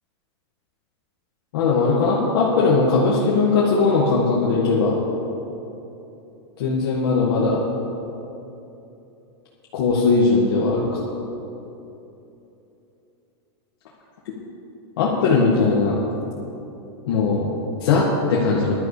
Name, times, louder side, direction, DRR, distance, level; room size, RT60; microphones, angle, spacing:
voice 1, 1.5-5.0 6.6-7.6 9.7-11.0 15.0-16.0 17.1-18.7, left 4 dB, 60° left, -5 dB, 2.0 m, -19 dB
19.0 x 12.0 x 3.4 m, 3.0 s
supercardioid pair, 175°, 14 cm